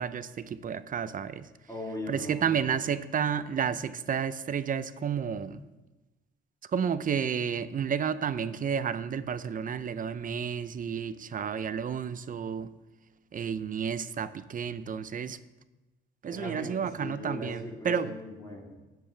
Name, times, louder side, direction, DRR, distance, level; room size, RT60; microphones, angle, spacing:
voice 1, 0.0-1.5 2.1-5.6 6.7-12.7 13.3-15.4 16.2-18.1, right 7 dB, 45° right, 14 dB, 0.6 m, -31 dB
voice 2, 1.7-2.6 16.3-18.8, left 2 dB, 20° left, -2 dB, 3.1 m, -39 dB
19.0 x 7.7 x 3.4 m, 1.1 s
cardioid pair, 90°, 20 cm